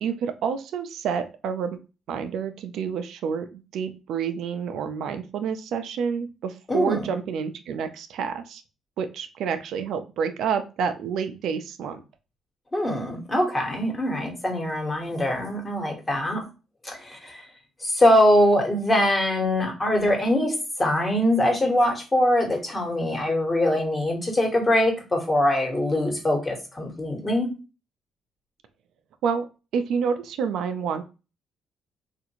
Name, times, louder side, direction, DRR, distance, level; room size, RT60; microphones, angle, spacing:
voice 1, 0.0-1.8 2.1-8.6 9.0-12.0 29.2-29.4 29.7-31.0, right 6 dB, 80° right, 8 dB, 0.4 m, -28 dB
voice 2, 6.7-7.1 12.7-16.4 16.8-17.4 17.8-27.5, left 1 dB, 25° left, 2 dB, 1.3 m, -23 dB
3.6 x 2.5 x 2.8 m, 0.31 s
cardioid pair, 90°, 0 cm